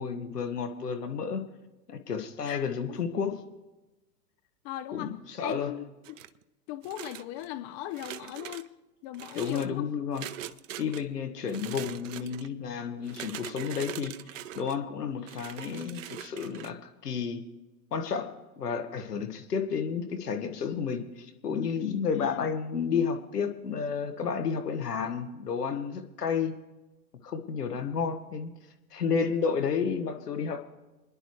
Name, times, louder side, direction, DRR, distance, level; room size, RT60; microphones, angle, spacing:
voice 1, 0.0-1.4 1.9-3.4 4.9-5.7 9.4-10.3 10.8-14.2 14.6-17.4 17.9-18.3 18.6-26.5 27.2-28.5 28.9-30.7, left 6 dB, 75° left, 7 dB, 1.7 m, -31 dB
voice 2, 4.6-5.1 5.4-6.2 6.7-8.7 9.0-9.9 22.1-22.5, left 14 dB, 30° left, 11 dB, 0.7 m, -38 dB
sound 1, 6.0-6.4 6.8-7.5 7.9-8.7 9.1-9.7 10.1-11.0 11.4-12.5 13.0-14.8 15.3-16.7, right 12 dB, 55° right, 0.7 m, -42 dB
28.0 x 10.5 x 3.3 m, 1.1 s
figure-of-eight pair, 105°, 48 cm